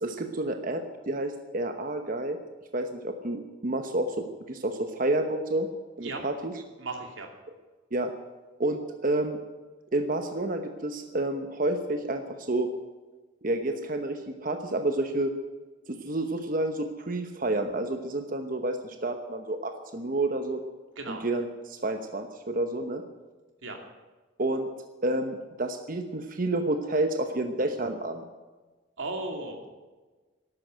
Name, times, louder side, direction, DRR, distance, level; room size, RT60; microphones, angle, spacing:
voice 1, 0.0-2.4 2.7-5.7 6.0-6.5 7.9-8.1 8.6-9.4 9.9-12.7 13.4-15.3 15.9-20.6 21.1-23.0 24.4-24.7 25.0-28.2, right 2 dB, 45° right, 6 dB, 1.0 m, -29 dB
voice 2, 6.8-7.3 21.0-21.2 23.6-23.8 29.0-29.7, right 2 dB, 75° right, 3 dB, 2.7 m, -35 dB
13.0 x 12.0 x 9.1 m, 1.3 s
head